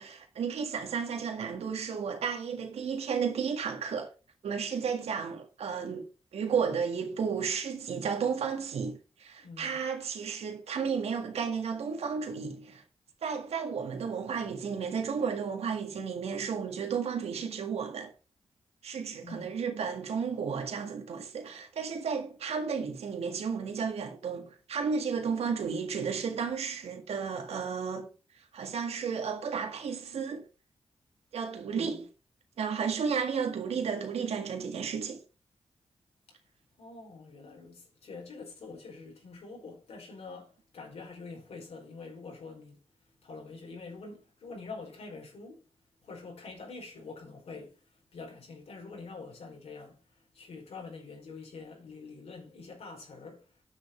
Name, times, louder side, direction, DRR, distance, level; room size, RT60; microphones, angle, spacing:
voice 1, 0.0-4.1 4.4-6.0 6.3-12.8 13.2-18.1 18.8-28.1 28.4-30.4 31.3-32.1 32.6-35.2, right 6 dB, 90° right, 1.8 m, -33 dB
voice 2, 9.4-9.8 19.2-19.5 31.7-32.0 36.8-42.8 43.2-45.6 46.0-47.8 48.1-53.5, left 4 dB, 85° left, 4.8 m, -46 dB
9.9 x 6.8 x 4.5 m
cardioid pair, 65°, 10 cm